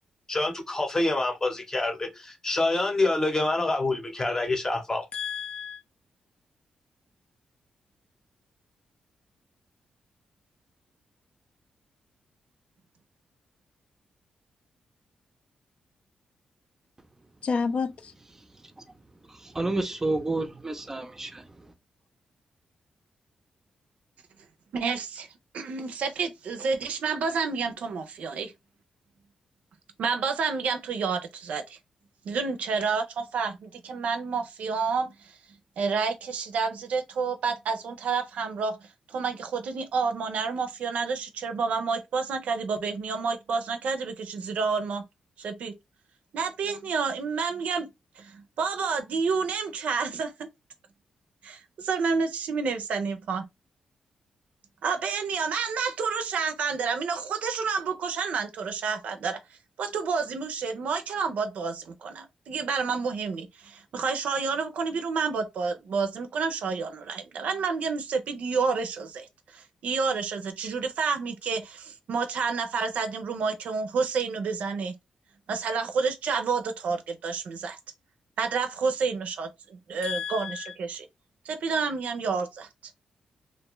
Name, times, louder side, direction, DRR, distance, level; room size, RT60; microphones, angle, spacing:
voice 1, 0.3-5.0, left 2 dB, 25° left, 0.7 m, -26 dB
voice 2, 5.1-5.8 17.4-18.1 80.0-80.7, left 5 dB, 55° left, 0.4 m, -30 dB
voice 3, 19.4-21.4, right 2 dB, 20° right, 0.4 m, -30 dB
voice 4, 24.7-25.3 25.5-28.5 30.0-31.8 32.3-35.3 35.8-38.8 39.1-45.0 45.4-45.7 46.3-47.9 48.2-50.5 51.4-53.4 54.8-59.4 59.8-74.9 75.5-77.8 78.4-81.1 81.5-82.7, right 5 dB, 75° right, 0.4 m, -29 dB
2.4 x 2.2 x 3.0 m
cardioid pair, 90°, 2 cm